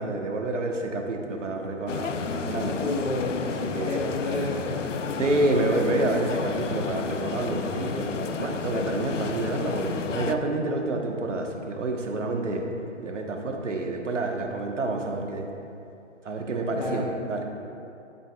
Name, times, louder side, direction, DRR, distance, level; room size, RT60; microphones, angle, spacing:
voice 1, 0.0-2.8 3.6-4.0 5.2-12.7 13.0-15.5 16.2-17.5, right 2 dB, 70° right, 2 dB, 1.3 m, -28 dB
sound 1, 1.9-10.4, left 5 dB, 70° left, 0.7 m, -31 dB
voice 2, 2.8-3.3 3.8-4.8 16.7-17.1, left 2 dB, 40° left, -4 dB, 0.9 m, -30 dB
13.0 x 8.4 x 2.4 m, 2.7 s
hypercardioid pair, 165°, 38 cm